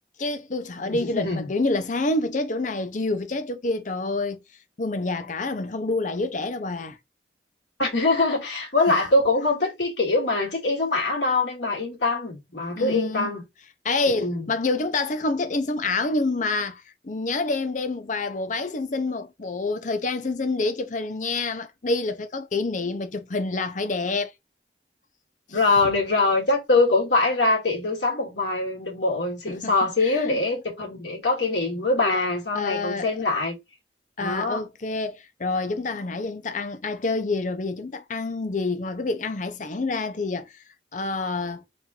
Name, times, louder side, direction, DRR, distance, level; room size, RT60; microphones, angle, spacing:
voice 1, 0.2-4.4 4.8-7.0 8.9-9.0 12.8-13.3 13.8-24.3 25.5-25.6 29.5-30.4 32.1-32.2 32.5-33.1 34.2-40.5 40.9-41.6, left 3 dB, 45° left, 0.7 m, -27 dB
voice 2, 0.8-1.5 7.8-13.4 14.1-14.5 25.5-33.6 34.2-34.6, left 3 dB, 85° left, 2.3 m, -23 dB
4.1 x 2.6 x 4.3 m
head